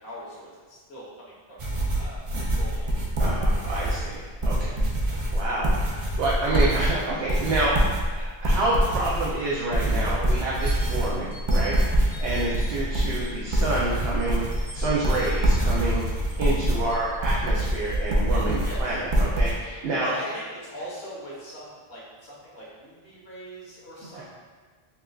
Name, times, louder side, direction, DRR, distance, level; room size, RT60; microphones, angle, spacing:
voice 1, 0.0-1.6 2.0-2.2 2.5-3.0 12.7-12.8 18.6-19.0 20.0-24.2, equal, 70° left, -8 dB, 1.4 m, -41 dB
sound 1, 1.6-19.5, right 1 dB, 40° right, 0.5 m, -25 dB
voice 2, 3.2-7.8 8.1-20.1 24.1-24.2, right 2 dB, 75° right, -6 dB, 0.9 m, -28 dB
sound 2, 10.6-13.7 14.2-18.8, left 1 dB, 45° left, 1.3 m, -47 dB
5.7 x 2.4 x 2.4 m, 1.5 s
omnidirectional pair, 1.1 m